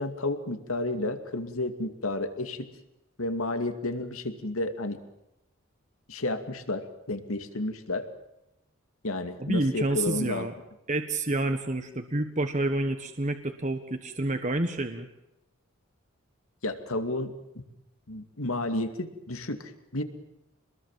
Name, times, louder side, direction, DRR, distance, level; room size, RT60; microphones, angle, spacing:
voice 1, 0.0-2.7 3.2-5.0 6.1-8.1 9.0-10.5 16.6-17.6 18.1-20.0, left 2 dB, 85° left, 8 dB, 2.5 m, -31 dB
voice 2, 9.4-10.5 10.9-15.1, right 2 dB, 35° right, 7 dB, 1.4 m, -29 dB
27.5 x 20.5 x 7.5 m, 0.89 s
head